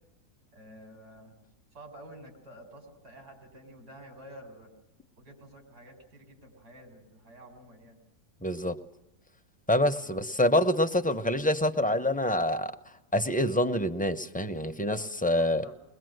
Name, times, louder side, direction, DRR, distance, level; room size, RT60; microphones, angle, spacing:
voice 1, 0.5-1.4 1.7-4.7 5.2-8.0 10.0-10.2 15.0-15.8, right 1 dB, 90° right, 5.1 m, -50 dB
voice 2, 8.4-8.8 9.7-12.7 13.1-15.6, left 1 dB, 10° left, 0.5 m, -26 dB
21.5 x 21.5 x 7.9 m
omnidirectional pair, 1.6 m